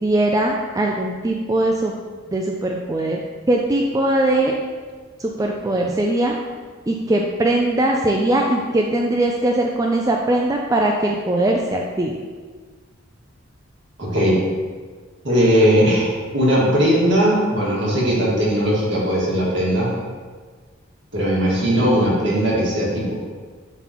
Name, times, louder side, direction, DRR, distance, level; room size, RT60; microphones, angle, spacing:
voice 1, 0.0-1.9 2.3-3.2 3.5-4.6 5.2-6.4 6.9-12.2, right 1 dB, 15° right, 0 dB, 0.4 m, -20 dB
voice 2, 14.0-14.4 15.2-19.9 21.1-23.1, equal, 60° right, -5 dB, 1.9 m, -18 dB
11.0 x 4.0 x 3.0 m, 1.5 s
head